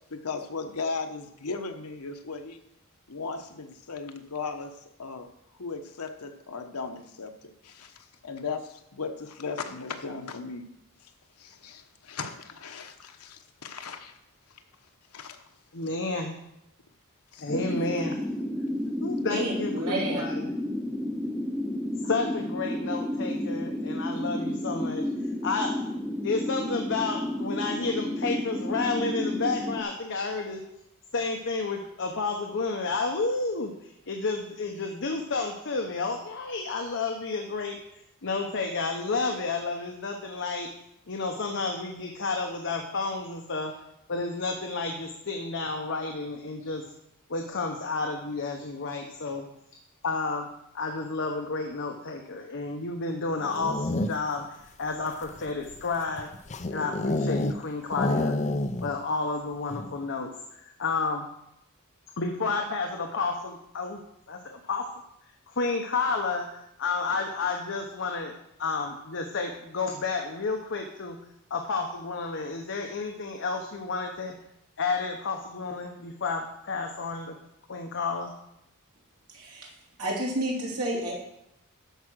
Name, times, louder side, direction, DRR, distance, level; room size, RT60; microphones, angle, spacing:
voice 1, 0.1-2.6 3.1-5.3 5.6-10.6 11.4-14.1 15.1-15.4 17.3-17.4, left 4 dB, 80° left, 6 dB, 1.1 m, -37 dB
voice 2, 15.7-16.4 17.4-18.2 19.0-20.6 22.0-25.1 25.4-25.7 26.2-30.6 31.1-37.8 38.2-40.7 41.1-43.7 44.1-46.8 47.3-49.4 50.0-50.5 50.7-56.3 56.7-58.4 58.8-61.3 62.2-64.0 64.3-64.8 65.5-66.5 66.8-68.3 68.6-71.2 71.5-74.3 74.8-77.3 77.7-78.3, left 3 dB, 60° left, 3 dB, 1.0 m, -31 dB
sound 1, 17.5-29.8, left 1 dB, 5° right, 0.7 m, -31 dB
voice 3, 19.3-20.2 79.3-79.7 80.0-81.1, right 1 dB, 80° right, -3 dB, 3.2 m, -30 dB
sound 2, 53.4-54.4 55.1-57.6 57.9-59.0 59.3-59.4 59.7-60.0, left 2 dB, 30° left, 0.6 m, -29 dB
12.5 x 4.9 x 6.2 m, 0.81 s
head